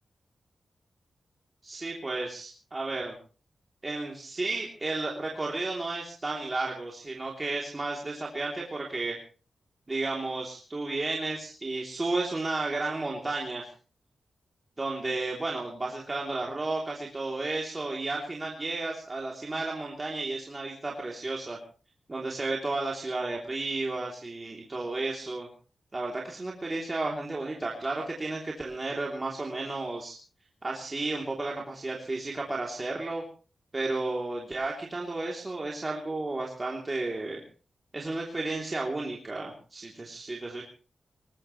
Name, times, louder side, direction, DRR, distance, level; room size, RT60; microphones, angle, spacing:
voice 1, 1.6-3.2 3.8-9.2 9.9-13.7 14.8-21.6 22.1-25.5 25.9-30.2 30.6-33.2 33.7-37.4 37.9-40.6, right 2 dB, 25° right, -2 dB, 3.1 m, -33 dB
22.0 x 19.5 x 3.2 m, 0.37 s
wide cardioid pair, 145°, 0 cm